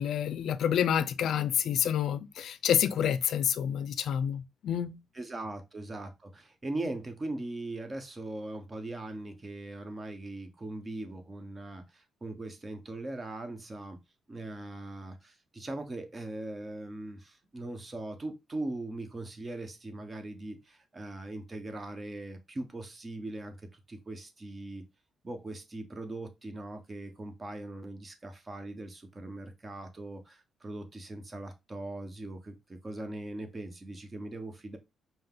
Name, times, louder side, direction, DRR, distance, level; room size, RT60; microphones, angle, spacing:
voice 1, 0.0-5.0, left 9 dB, 70° left, 0.4 m, -28 dB
voice 2, 5.1-14.0 14.3-24.8 25.2-34.8, right 2 dB, 25° right, 1.1 m, -40 dB
5.3 x 2.1 x 3.8 m
cardioid pair, 90°, 0 cm